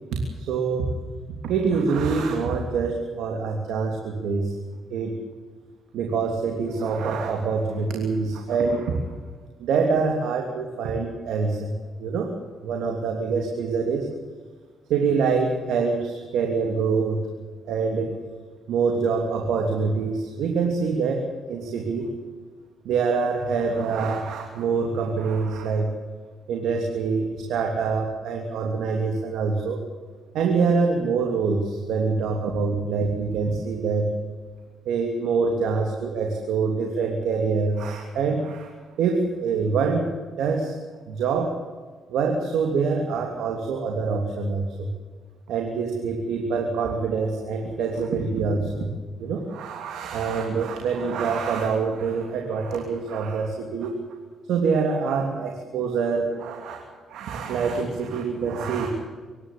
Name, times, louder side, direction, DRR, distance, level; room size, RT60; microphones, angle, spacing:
voice 1, 0.1-0.9 1.4-4.5 4.9-5.1 5.9-9.0 9.6-12.3 12.6-14.1 14.9-17.3 17.7-18.1 18.7-22.1 22.8-25.9 26.5-29.8 30.3-34.1 34.8-38.7 39.0-40.7 41.1-41.6 42.1-44.9 45.5-48.9 49.2-54.0 54.5-56.8 57.1-58.9, right 5 dB, 80° right, 2 dB, 3.0 m, -25 dB
24.5 x 11.5 x 10.0 m, 1.5 s
cardioid pair, 90°, 0 cm